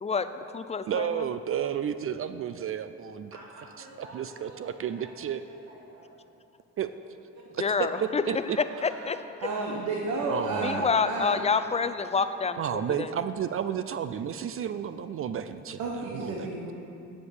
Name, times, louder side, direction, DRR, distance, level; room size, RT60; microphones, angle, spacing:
voice 1, 0.0-1.3 7.6-8.2 8.6-9.2 10.6-13.1, left 5 dB, 20° left, 11 dB, 0.5 m, -28 dB
voice 2, 0.9-3.3 4.1-5.4 6.8-6.9 7.6-8.6 10.3-11.0 12.6-15.8 16.1-16.7, right 8 dB, 45° right, 12 dB, 0.4 m, -32 dB
voice 3, 3.3-6.2 7.3-7.4 7.9-8.3 8.6-9.3 10.5-11.8 12.2-12.6, right 1 dB, 60° right, -4 dB, 2.4 m, -49 dB
voice 4, 9.4-11.4 15.8-16.7, right 3 dB, 80° right, -2 dB, 1.2 m, -31 dB
9.6 x 7.4 x 6.4 m, 2.7 s
cardioid pair, 90°, 30 cm